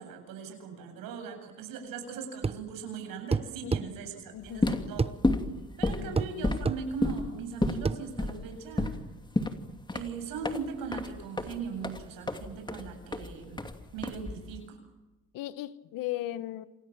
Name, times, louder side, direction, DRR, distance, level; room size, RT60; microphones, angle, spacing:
voice 1, 0.0-5.1 5.8-9.0 9.9-13.6 13.9-14.8, right 5 dB, 75° right, 7.9 m, -39 dB
sound 1, 2.4-2.7 3.3-3.9 5.0-5.2 6.2-6.3 6.7-6.8 7.9-8.0, right 4 dB, 15° right, 0.9 m, -28 dB
voice 2, 3.6-4.9 6.0-6.7 15.3-16.7, left 14 dB, 75° left, 1.3 m, -38 dB
sound 2, 4.4-14.6, left 2 dB, 15° left, 2.7 m, -32 dB
28.5 x 26.5 x 7.5 m
supercardioid pair, 85°, 34 cm